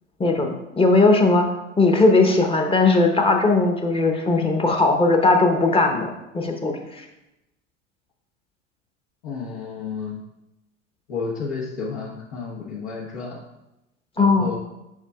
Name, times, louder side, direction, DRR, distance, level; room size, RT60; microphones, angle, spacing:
voice 1, 0.2-1.4 1.8-7.0 14.2-14.6, left 3 dB, 15° left, 3 dB, 0.9 m, -18 dB
voice 2, 9.2-10.2 11.1-13.4 14.2-14.6, left 5 dB, 60° left, -6 dB, 1.3 m, -31 dB
7.2 x 5.8 x 2.3 m, 0.92 s
figure-of-eight pair, 75°, 37 cm